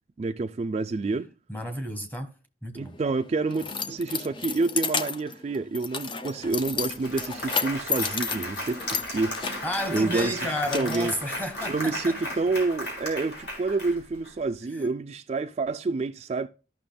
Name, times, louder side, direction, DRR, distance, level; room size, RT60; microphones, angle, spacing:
voice 1, 0.2-1.3 2.7-9.5 9.9-11.1 11.7-16.5, right 3 dB, 35° right, 0.3 m, -28 dB
voice 2, 1.5-2.3 2.6-3.0 9.4-12.4 14.7-14.9, left 1 dB, 10° left, 1.2 m, -32 dB
Keys jangling, 2.8-11.9, left 5 dB, 25° left, 0.5 m, -33 dB
Applause, 6.4-6.5 6.8-14.3, left 1 dB, 70° left, 4.4 m, -36 dB
14.0 x 6.0 x 2.2 m
head